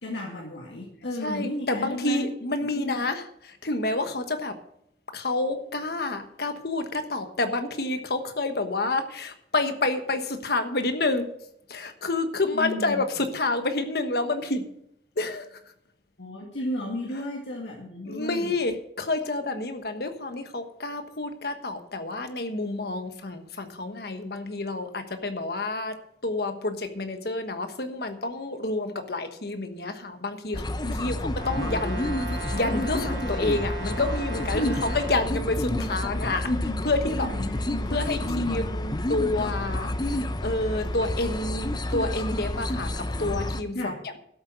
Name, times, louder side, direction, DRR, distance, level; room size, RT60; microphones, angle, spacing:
voice 1, 0.0-2.3 2.6-3.0 12.5-13.0 16.2-18.5 30.8-31.1 34.5-34.8 35.7-35.8 36.4-36.8 37.2-38.7 43.7-44.2, left 1 dB, 90° left, -2 dB, 2.0 m, -33 dB
voice 2, 1.2-4.6 5.1-11.3 11.7-14.7 15.2-15.6 18.0-30.6 31.0-31.2 31.4-36.5 36.8-37.3 37.9-44.2, left 2 dB, 60° left, 8 dB, 1.3 m, -29 dB
sound 1, 30.5-43.6, left 1 dB, 25° left, 0.6 m, -30 dB
Brass instrument, 31.3-35.3, right 3 dB, 70° right, 1.5 m, -38 dB
12.5 x 7.9 x 6.2 m, 0.72 s
head